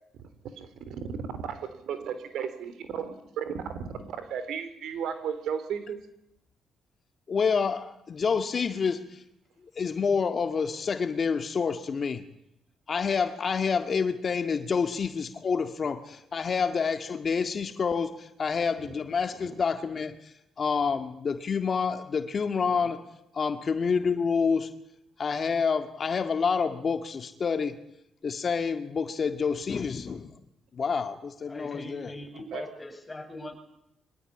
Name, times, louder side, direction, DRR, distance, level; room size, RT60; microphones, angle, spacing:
voice 1, 0.6-6.0 22.7-22.9 32.5-32.7, right 7 dB, 75° right, 11 dB, 3.6 m, -35 dB
voice 2, 7.3-9.2 9.8-12.2 12.9-20.1 20.6-23.0 23.3-24.7 25.2-27.8 28.2-30.3 30.8-32.1, left 5 dB, 45° left, 8 dB, 1.9 m, -28 dB
voice 3, 31.5-33.6, left 1 dB, 15° left, 4 dB, 7.2 m, -41 dB
23.5 x 20.0 x 10.0 m, 0.81 s
cardioid pair, 90°, 0 cm